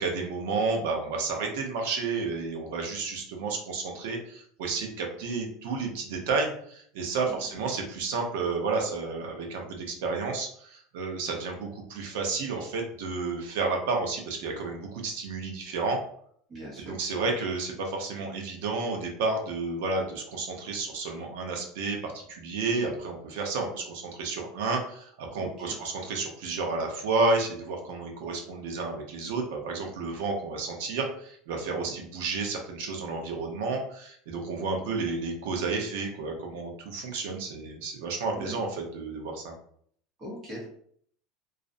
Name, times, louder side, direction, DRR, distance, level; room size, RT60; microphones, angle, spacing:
voice 1, 0.0-16.0 16.9-38.7 38.9-39.5, right 3 dB, 75° right, 2 dB, 0.6 m, -31 dB
voice 2, 7.2-7.6 16.5-17.0 25.4-25.8 31.7-32.0 38.3-38.5 40.2-40.6, equal, 25° right, -5 dB, 0.7 m, -41 dB
2.4 x 2.0 x 2.5 m, 0.63 s
cardioid pair, 170°, 0 cm